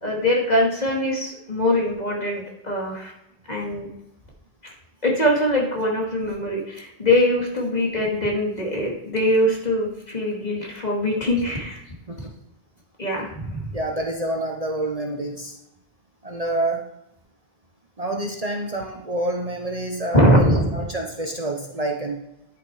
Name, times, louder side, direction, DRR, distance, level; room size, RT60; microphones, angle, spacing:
voice 1, 0.0-3.1 3.5-3.9 5.0-11.8 13.0-13.6 20.1-20.7, left 1 dB, 40° left, -2 dB, 2.5 m, -22 dB
voice 2, 13.7-15.6 16.2-16.9 18.0-22.2, right 1 dB, 35° right, 1 dB, 1.1 m, -27 dB
10.5 x 6.2 x 4.9 m, 0.85 s
omnidirectional pair, 1.1 m